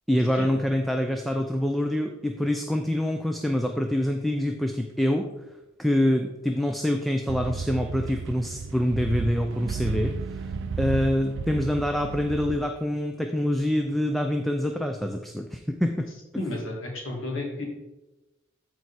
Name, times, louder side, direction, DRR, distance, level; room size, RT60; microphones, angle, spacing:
voice 1, 0.1-5.3 5.8-10.5 10.8-16.0 16.3-16.4, left 1 dB, ahead, 4 dB, 0.4 m, -26 dB
sound 1, 7.3-12.6, right 5 dB, 60° right, 0.4 m, -33 dB
voice 2, 16.4-17.6, left 2 dB, 65° left, 0 dB, 2.4 m, -32 dB
14.0 x 4.7 x 4.2 m, 1.0 s
head